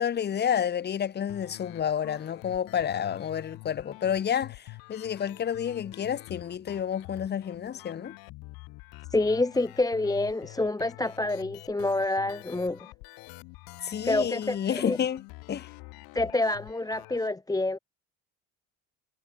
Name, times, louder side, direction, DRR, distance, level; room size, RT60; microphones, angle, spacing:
voice 1, 0.0-8.1 13.8-15.2 15.5-15.7, left 8 dB, 30° left, 0.7 m, -30 dB
sound 1, 1.3-17.3, left 24 dB, 85° left, 7.8 m, -47 dB
voice 2, 9.1-12.9 14.0-15.0 16.1-17.8, left 2 dB, 10° left, 1.1 m, -27 dB
cardioid pair, 105°, 34 cm